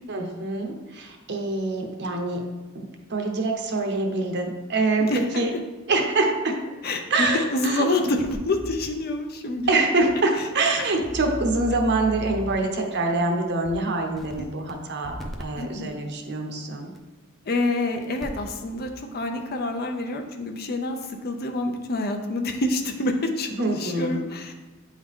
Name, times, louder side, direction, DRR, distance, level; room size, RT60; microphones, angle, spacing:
voice 1, 0.1-2.5 2.7-5.5 5.9-6.6 7.1-8.0 9.7-16.9 23.6-24.2, right 2 dB, 55° right, 3 dB, 0.9 m, -25 dB
voice 2, 6.8-9.8 14.4-14.5 15.6-15.9 17.5-24.5, left 2 dB, 45° left, 4 dB, 0.6 m, -27 dB
sound 1, 8.2-8.9 9.6-9.7 10.0-10.1 11.0-12.7 13.6-13.7 14.2-14.7 15.0-15.4 16.9-17.0 18.0-18.5 18.8-18.9, equal, ahead, 0.6 m, -36 dB
8.5 x 3.7 x 3.6 m, 1.2 s
head